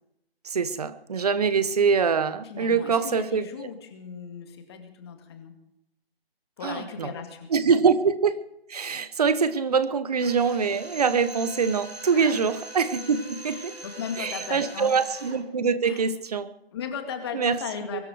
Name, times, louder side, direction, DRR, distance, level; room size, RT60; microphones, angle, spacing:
voice 1, 0.4-3.4 6.6-7.1 7.5-8.4 8.7-13.7 14.2-16.5 17.3-17.6 17.9-18.0, right 5 dB, 40° right, 14 dB, 1.1 m, -24 dB
voice 2, 2.4-5.5 6.6-7.5 12.1-12.4 13.4-15.0 15.8-16.0 16.7-18.0, left 7 dB, 25° left, 5 dB, 2.1 m, -37 dB
Drill, 10.2-15.5, right 2 dB, 90° right, 2.7 m, -41 dB
23.0 x 12.5 x 4.9 m, 0.78 s
figure-of-eight pair, 155°, 31 cm